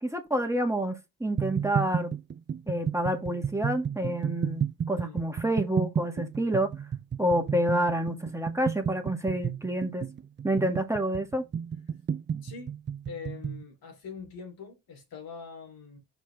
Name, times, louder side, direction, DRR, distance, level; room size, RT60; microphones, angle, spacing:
voice 1, 0.0-2.1 2.7-6.7 7.2-10.0 10.4-11.4, right 1 dB, 10° right, 1.9 m, -28 dB
sound 1, 1.4-13.6, right 7 dB, 30° right, 0.5 m, -32 dB
voice 2, 5.0-5.3 10.5-10.8 12.4-12.8 13.1-16.0, left 5 dB, 75° left, 3.5 m, -43 dB
6.6 x 4.5 x 3.4 m
supercardioid pair, 45°, 36 cm